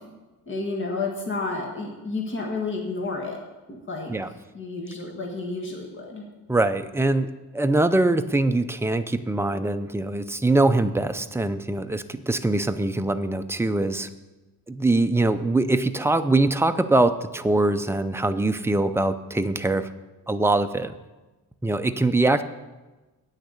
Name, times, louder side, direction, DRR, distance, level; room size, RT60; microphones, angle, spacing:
voice 1, 0.5-3.4 3.7-4.1 4.5-6.2, left 3 dB, 30° left, 0 dB, 1.7 m, -31 dB
voice 2, 6.5-14.1 14.7-19.9 20.3-20.9 21.6-22.4, right 2 dB, 5° right, 8 dB, 0.3 m, -23 dB
8.9 x 6.5 x 8.4 m, 1.2 s
wide cardioid pair, 150°, 40 cm